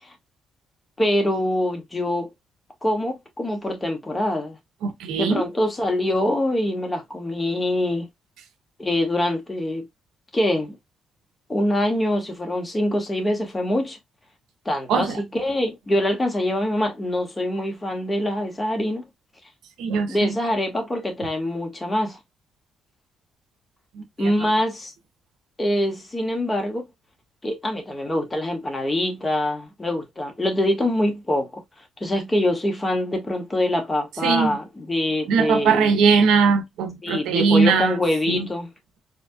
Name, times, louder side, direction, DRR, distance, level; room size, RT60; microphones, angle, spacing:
voice 1, 1.0-2.3 2.8-4.6 5.2-8.0 8.8-9.8 10.3-10.8 11.5-14.0 14.6-19.0 20.1-22.2 24.2-24.9 25.6-26.9 27.4-31.6 32.0-36.0 37.0-38.7, left 1 dB, 20° left, 1.5 m, -24 dB
voice 2, 4.8-5.4 14.9-15.2 19.8-20.4 24.0-24.3 34.2-34.6 35.3-38.0 38.3-38.5, right 5 dB, 85° right, 0.8 m, -20 dB
4.2 x 2.9 x 2.3 m
cardioid pair, 90°, 0 cm